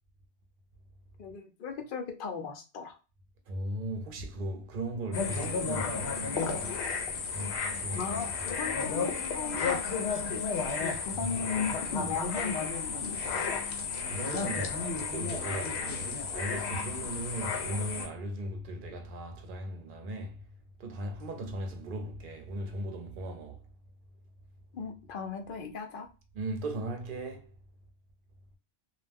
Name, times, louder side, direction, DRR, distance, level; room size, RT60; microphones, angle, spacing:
voice 1, 1.2-3.0 7.9-13.4 24.7-26.1, left 5 dB, 60° left, 0.7 m, -37 dB
voice 2, 3.5-7.1 7.3-8.6 11.2-11.6 14.1-20.4 20.8-23.6 26.3-27.5, right 1 dB, 60° right, 0.7 m, -38 dB
sound 1, 5.1-18.1, left 5 dB, 85° left, 0.9 m, -33 dB
2.3 x 2.1 x 3.3 m
omnidirectional pair, 1.1 m